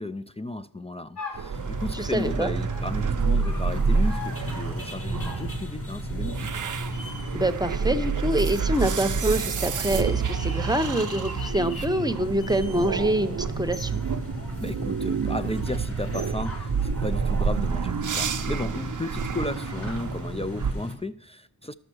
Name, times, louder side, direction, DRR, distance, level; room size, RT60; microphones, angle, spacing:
voice 1, 0.0-6.5 14.6-21.7, left 2 dB, 15° left, 0.3 m, -34 dB
sound 1, 1.2-20.2, left 3 dB, 60° left, 3.4 m, -47 dB
sound 2, 1.3-20.7, right 5 dB, 50° right, 0.5 m, -29 dB
sound 3, 1.5-21.0, left 2 dB, 35° left, 1.9 m, -37 dB
voice 2, 1.9-2.5 7.3-14.0, right 1 dB, 10° right, 0.7 m, -26 dB
11.5 x 6.7 x 6.2 m
wide cardioid pair, 65°, 39 cm